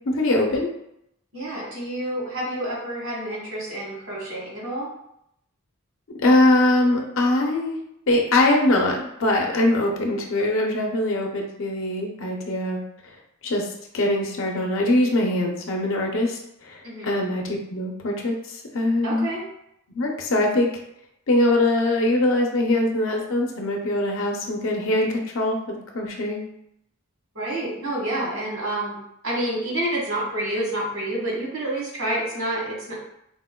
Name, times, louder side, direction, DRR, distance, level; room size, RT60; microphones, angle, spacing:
voice 1, 0.1-0.7 6.1-7.8 8.1-13.1 13.4-13.7 13.9-19.3 19.9-20.7 21.3-26.4, left 1 dB, 65° left, 1 dB, 0.6 m, -22 dB
voice 2, 1.3-4.9 16.8-17.1 19.0-19.4 27.3-29.0 29.2-33.0, right 1 dB, 70° right, -4 dB, 1.2 m, -28 dB
4.1 x 2.2 x 2.2 m, 0.78 s
head